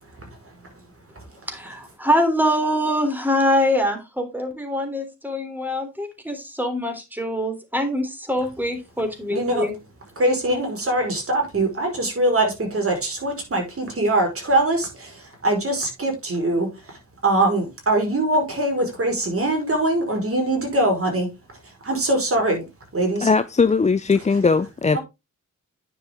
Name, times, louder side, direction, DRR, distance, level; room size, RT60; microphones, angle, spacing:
voice 1, 0.2-0.5 9.3-9.7 10.2-21.3 21.8-22.6 22.9-23.3 24.9-25.0, right 1 dB, 45° right, 5.2 m, -22 dB
voice 2, 1.5-9.7, equal, 5° right, 3.5 m, -24 dB
voice 3, 23.2-25.0, left 4 dB, 25° left, 0.5 m, -19 dB
9.7 x 7.0 x 3.7 m
cardioid pair, 80°, 31 cm